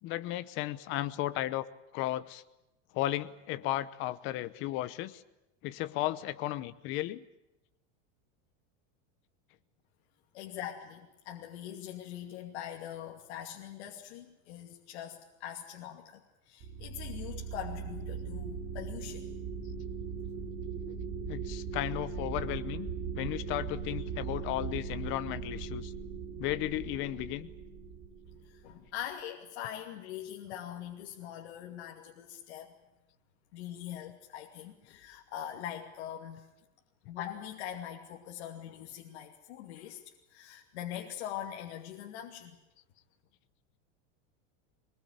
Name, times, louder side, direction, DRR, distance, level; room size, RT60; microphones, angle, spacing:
voice 1, 0.0-1.7 1.9-2.4 2.9-5.2 5.6-7.2 21.3-22.9 23.1-25.9 26.4-27.5, left 15 dB, 35° left, 14 dB, 0.9 m, -34 dB
voice 2, 10.3-16.2 16.5-19.3 28.4-32.7 33.5-36.5 37.1-40.0 40.3-42.6, left 10 dB, 70° left, 0 dB, 2.7 m, -42 dB
sound 1, 16.6-28.9, right 6 dB, 35° right, 4.8 m, -39 dB
22.5 x 21.0 x 9.6 m, 0.93 s
supercardioid pair, 175°, 35 cm